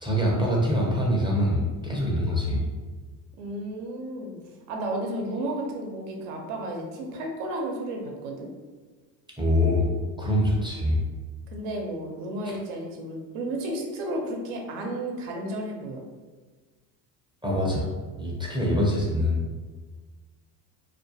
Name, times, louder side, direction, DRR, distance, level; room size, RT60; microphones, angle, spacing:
voice 1, 0.0-2.7 9.4-9.9 10.2-11.0 17.4-17.9 18.2-19.4, left 1 dB, 10° right, -4 dB, 0.5 m, -24 dB
voice 2, 3.4-4.4 4.7-8.5 11.5-16.0, right 1 dB, 75° right, 1 dB, 0.7 m, -32 dB
2.3 x 2.2 x 2.7 m, 1.4 s
supercardioid pair, 80°, 49 cm